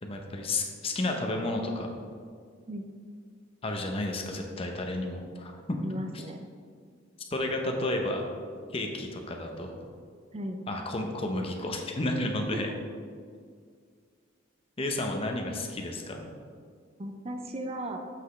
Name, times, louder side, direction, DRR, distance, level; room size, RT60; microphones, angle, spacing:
voice 1, 0.0-1.9 3.6-5.8 6.1-6.2 7.3-8.2 8.7-9.8 10.7-12.7 14.8-16.2, left 2 dB, 30° left, 2 dB, 0.7 m, -32 dB
voice 2, 5.8-6.4 10.3-10.6 12.5-12.7 17.0-18.0, right 1 dB, 30° right, 5 dB, 0.4 m, -36 dB
7.5 x 6.2 x 3.2 m, 2.1 s
head